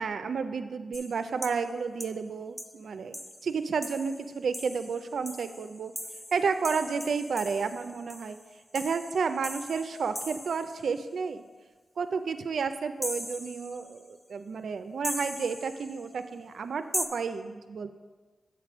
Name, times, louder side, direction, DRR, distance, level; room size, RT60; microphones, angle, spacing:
voice 1, 0.0-5.9 6.3-8.4 8.7-11.4 12.0-17.9, right 5 dB, 80° right, 10 dB, 0.4 m, -31 dB
sound 1, 0.9-1.7 2.0-2.2 2.6-2.7 3.1-10.9 13.0-14.1 15.0-16.1 16.9-17.1, left 1 dB, 15° left, 0.6 m, -39 dB
7.5 x 4.5 x 6.0 m, 1.4 s
cardioid pair, 50°, 0 cm